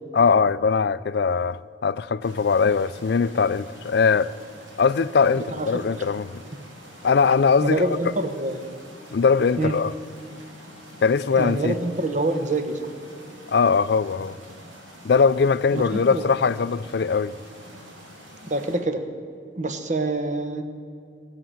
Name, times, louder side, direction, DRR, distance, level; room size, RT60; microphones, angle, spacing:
voice 1, 0.1-4.3 4.8-6.3 7.0-7.8 9.1-9.9 11.0-11.8 13.5-14.4 15.0-17.3, left 5 dB, 55° left, 0.4 m, -21 dB
sound 1, 2.2-18.8, equal, 85° right, 3.9 m, -46 dB
voice 2, 5.5-6.0 7.6-8.6 9.6-9.7 11.4-12.8 15.7-16.3 18.4-19.0 19.6-20.6, right 2 dB, 40° right, 1.1 m, -26 dB
19.0 x 8.3 x 7.7 m
head